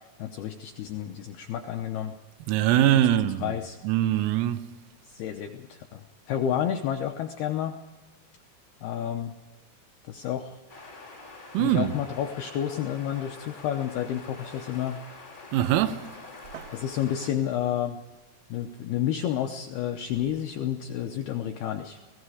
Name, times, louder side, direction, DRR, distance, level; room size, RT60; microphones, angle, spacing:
voice 1, 0.2-2.1 3.4-3.8 5.1-7.7 8.8-9.3 10.0-10.6 11.6-15.0 16.7-18.0 18.5-22.0, left 10 dB, 80° left, 2.2 m, -30 dB
voice 2, 2.5-3.6 3.8-4.7 11.5-11.9 15.5-16.1 16.5-16.7, right 12 dB, 90° right, 3.7 m, -23 dB
sound 1, 10.7-17.3, left 3 dB, 20° left, 1.2 m, -46 dB
29.5 x 18.0 x 4.9 m
omnidirectional pair, 5.9 m